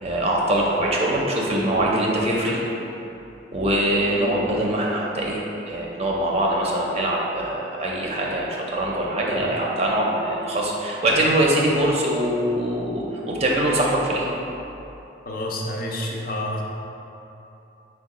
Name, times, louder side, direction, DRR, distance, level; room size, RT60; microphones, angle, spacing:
voice 1, 0.0-2.6 3.5-14.3, right 1 dB, 35° right, -3 dB, 0.5 m, -23 dB
voice 2, 15.2-16.6, left 1 dB, 50° left, -2 dB, 0.5 m, -28 dB
4.5 x 2.3 x 4.8 m, 2.9 s
head